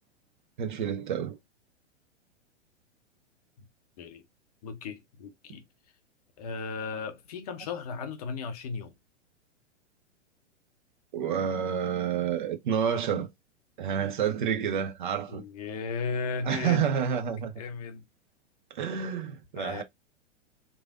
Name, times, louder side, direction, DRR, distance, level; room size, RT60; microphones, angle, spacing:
voice 1, 0.6-1.4 11.1-13.3 13.8-15.4 16.5-17.5 18.7-19.8, right 8 dB, 45° right, 0.5 m, -29 dB
voice 2, 4.6-5.6 6.4-8.9 15.3-17.0 17.4-18.0 19.6-19.8, left 5 dB, 35° left, 0.5 m, -36 dB
3.1 x 2.5 x 2.3 m
figure-of-eight pair, 105°, 36 cm